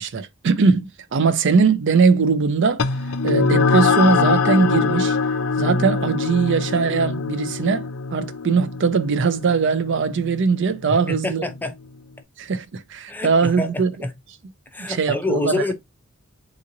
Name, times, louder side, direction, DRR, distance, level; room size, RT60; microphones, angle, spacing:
voice 1, 0.0-2.9 3.2-5.2 5.6-11.5 12.4-13.9 14.9-15.6, right 5 dB, 60° right, 0.5 m, -20 dB
sound 1, 2.8-11.6, left 4 dB, 80° left, 0.5 m, -23 dB
voice 2, 10.9-11.7 13.1-14.1 14.7-15.7, left 2 dB, 10° left, 0.5 m, -27 dB
3.8 x 3.0 x 2.6 m
head